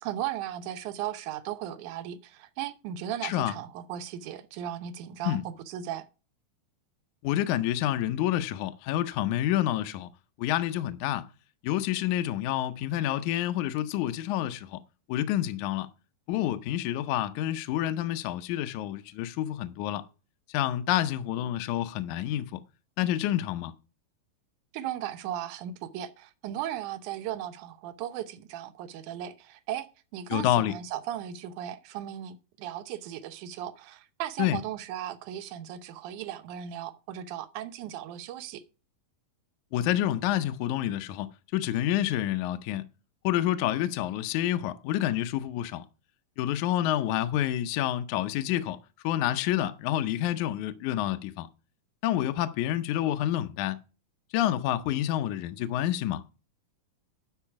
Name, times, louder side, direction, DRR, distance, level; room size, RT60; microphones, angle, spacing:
voice 1, 0.0-6.1 24.7-29.9 30.1-38.6, right 11 dB, 75° right, 2.2 m, -36 dB
voice 2, 3.2-3.5 5.2-5.4 7.2-10.1 10.4-11.3 11.6-14.8 15.1-15.9 16.3-20.1 20.5-22.6 23.0-23.7 30.3-30.7 34.4-34.6 39.7-41.3 41.5-42.8 43.2-45.9 46.4-48.8 49.0-51.5 52.0-53.8 54.3-56.2, left 12 dB, 75° left, 1.9 m, -28 dB
12.0 x 4.8 x 5.8 m
omnidirectional pair, 3.9 m